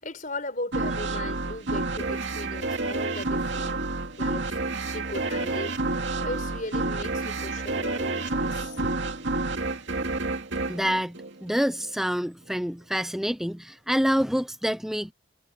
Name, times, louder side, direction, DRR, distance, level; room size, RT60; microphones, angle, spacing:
voice 1, 0.0-3.9 4.2-5.8 6.2-9.0, left 2 dB, 40° left, 4.9 m, -37 dB
sound 1, 0.7-11.9, right 2 dB, 65° right, 2.4 m, -29 dB
voice 2, 10.7-15.1, equal, ahead, 0.6 m, -27 dB
head